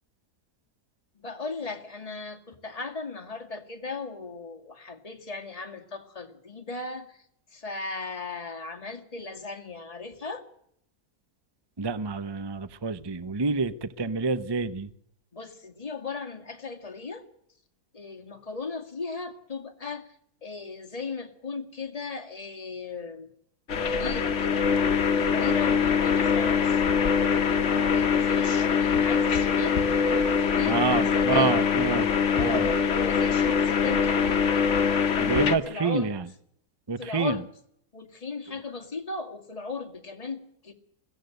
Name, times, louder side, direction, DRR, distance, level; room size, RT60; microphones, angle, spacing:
voice 1, 1.2-7.2 7.5-10.4 15.3-17.2 17.9-20.1 20.4-23.3 23.9-24.7 25.3-26.8 27.2-31.6 32.4-34.8 35.3-36.1 37.0-37.5 37.9-40.7, left 4 dB, 25° left, 4 dB, 2.1 m, -37 dB
voice 2, 11.8-14.9 30.6-32.7 35.2-36.3 36.9-37.4, right 4 dB, 25° right, 14 dB, 0.5 m, -28 dB
sound 1, 23.7-35.6, left 6 dB, 50° left, 1.4 m, -23 dB
21.5 x 16.0 x 7.9 m, 0.70 s
omnidirectional pair, 1.7 m